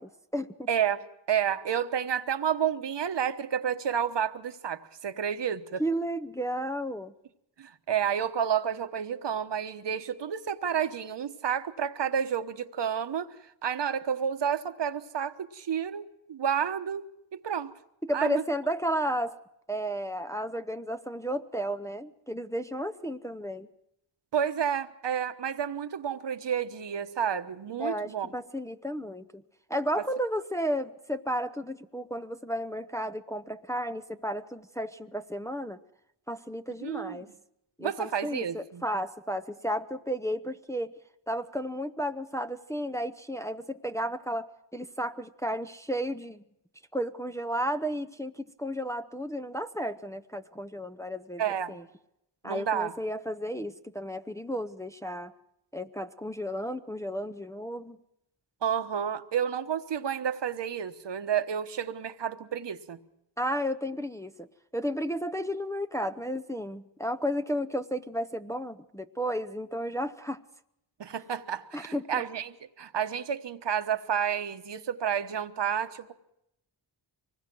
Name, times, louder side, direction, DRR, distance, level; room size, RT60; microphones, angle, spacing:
voice 1, 0.0-0.7 5.8-7.1 18.0-19.4 19.7-23.7 27.8-29.4 29.7-35.8 36.3-37.3 37.8-40.9 41.3-46.4 46.9-51.8 52.4-55.3 55.7-58.0 63.4-64.5 64.7-70.4 71.7-72.2, equal, 5° left, 7 dB, 0.7 m, -33 dB
voice 2, 0.7-5.8 7.6-13.3 13.6-17.7 18.1-18.4 24.3-28.3 36.8-37.2 37.8-38.8 51.4-51.8 52.4-52.9 58.6-63.0 71.0-76.1, right 8 dB, 60° right, 9 dB, 1.2 m, -30 dB
24.5 x 20.0 x 6.1 m, 0.82 s
cardioid pair, 80°, 47 cm